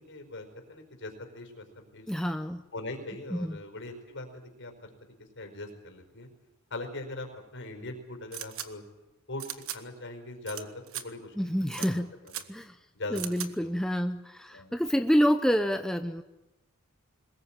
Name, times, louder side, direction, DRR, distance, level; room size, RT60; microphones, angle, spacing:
voice 1, 0.0-2.0 2.7-4.9 5.3-6.3 6.7-7.3 7.5-8.8 9.3-9.4 9.7-11.5 11.8-12.3 12.9-13.7 14.5-14.9, left 2 dB, 55° left, 5 dB, 4.9 m, -41 dB
voice 2, 2.1-2.6 3.3-3.5 11.4-12.1 12.5-12.8 13.1-16.2, equal, 5° left, 7 dB, 0.8 m, -27 dB
sound 1, 8.3-8.7 9.4-9.8 10.5-10.6 10.9-11.0 11.7-11.9 12.3-12.4 13.2-13.5, right 11 dB, 65° right, 1.5 m, -37 dB
22.5 x 20.5 x 9.0 m, 0.95 s
head